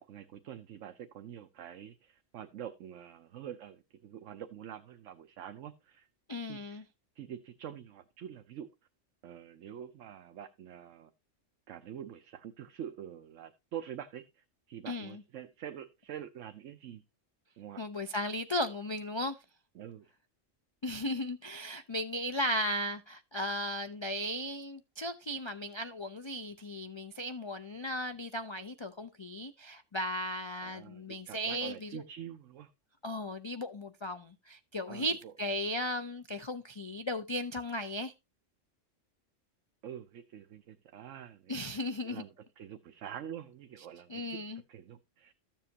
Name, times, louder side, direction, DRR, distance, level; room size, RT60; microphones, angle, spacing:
voice 1, 0.0-6.1 6.5-6.8 7.2-8.7 9.2-11.1 11.7-17.0 17.6-17.8 19.7-20.1 30.6-32.7 34.9-35.3 39.8-41.6 42.0-44.4 44.7-45.3, right 9 dB, 75° right, 1.1 m, -46 dB
voice 2, 6.3-6.8 14.8-15.2 17.8-19.4 20.8-32.0 33.0-38.1 41.5-42.2 44.1-44.6, equal, 40° left, 0.4 m, -36 dB
13.5 x 7.4 x 2.8 m
omnidirectional pair, 1.3 m